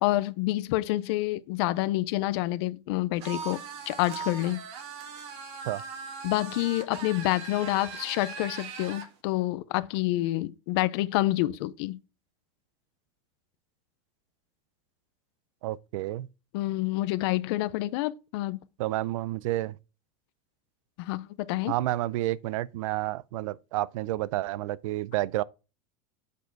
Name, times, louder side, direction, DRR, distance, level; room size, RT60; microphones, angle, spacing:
voice 1, 0.0-3.6 3.9-4.6 6.2-12.0 16.5-18.6 21.0-21.7, left 17 dB, 55° left, 0.5 m, -28 dB
sound 1, 3.2-9.1, right 6 dB, 35° right, 1.5 m, -40 dB
voice 2, 15.6-16.3 18.8-19.8 21.7-25.4, right 16 dB, 90° right, 0.5 m, -30 dB
8.3 x 4.4 x 4.6 m
supercardioid pair, 180°, 16 cm